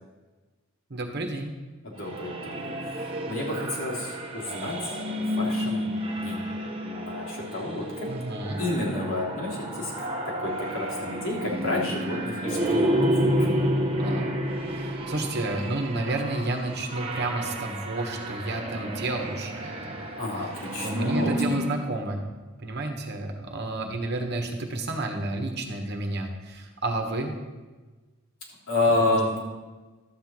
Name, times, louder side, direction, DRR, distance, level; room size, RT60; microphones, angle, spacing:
voice 1, 0.9-1.5 8.1-8.6 14.0-14.3 14.7-20.0 20.8-22.3 22.6-27.3 29.0-29.2, right 2 dB, 50° right, 3 dB, 1.3 m, -31 dB
voice 2, 1.8-5.0 5.2-6.4 6.8-8.1 8.6-9.9 10.2-13.0 13.4-13.5 20.2-21.4 28.7-29.4, left 2 dB, 70° left, -5 dB, 3.3 m, -30 dB
sound 1, 2.0-21.8, equal, 25° right, 1.2 m, -30 dB
12.0 x 4.5 x 7.8 m, 1.3 s
head